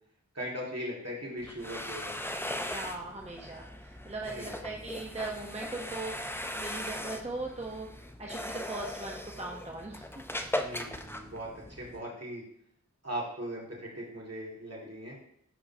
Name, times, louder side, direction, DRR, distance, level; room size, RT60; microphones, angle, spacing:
voice 1, 0.3-2.1 4.3-4.8 10.6-12.4 13.0-15.2, equal, 50° right, -4 dB, 1.9 m, -39 dB
sound 1, 1.4-12.0, left 1 dB, 10° left, 0.5 m, -39 dB
voice 2, 2.7-10.0, right 2 dB, 20° right, -1 dB, 0.8 m, -39 dB
11.0 x 3.6 x 2.7 m, 0.70 s
wide cardioid pair, 50°, 31 cm